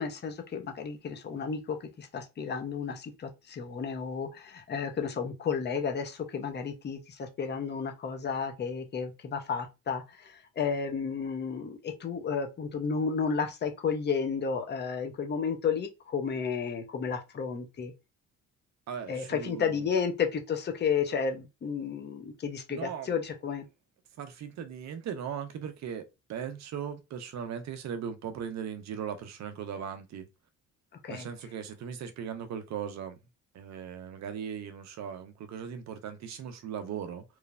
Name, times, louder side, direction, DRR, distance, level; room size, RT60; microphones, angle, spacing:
voice 1, 0.0-17.9 19.1-23.7 31.0-31.3, left 6 dB, 35° left, 0.6 m, -32 dB
voice 2, 18.9-19.8 22.7-23.1 24.2-30.3 31.1-33.2 33.5-37.2, right 8 dB, 65° right, 0.6 m, -38 dB
3.1 x 2.0 x 2.3 m
cardioid pair, 90°, 30 cm